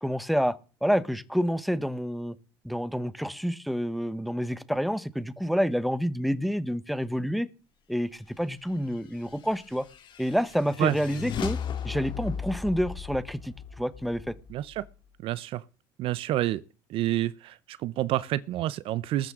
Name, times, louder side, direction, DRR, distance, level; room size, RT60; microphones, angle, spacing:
voice 1, 0.0-2.4 2.6-7.5 7.9-9.9 10.2-11.6 11.8-14.3, equal, ahead, 1.0 m, -28 dB
sound 1, 9.3-14.9, left 7 dB, 50° left, 2.1 m, -37 dB
voice 2, 14.5-14.9 15.2-15.6 16.0-16.6 16.9-19.3, right 14 dB, 65° right, 0.7 m, -28 dB
19.5 x 9.1 x 3.7 m
supercardioid pair, 95°, 10 cm